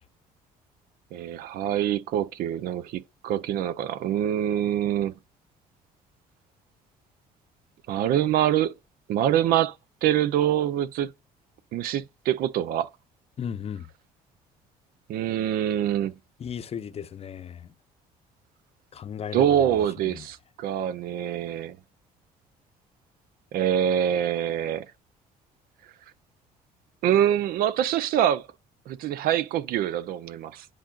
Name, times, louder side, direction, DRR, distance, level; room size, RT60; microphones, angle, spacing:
voice 1, 1.1-5.1 7.9-8.7 9.1-9.7 10.0-11.1 11.7-12.9 15.1-16.2 19.3-21.8 23.5-24.9 27.0-28.5 28.9-30.7, right 10 dB, 70° right, 0.5 m, -25 dB
voice 2, 13.4-13.9 16.4-17.7 18.9-19.8 20.1-20.2, left 8 dB, 40° left, 0.7 m, -35 dB
10.0 x 3.9 x 2.4 m
supercardioid pair, 85°, 16 cm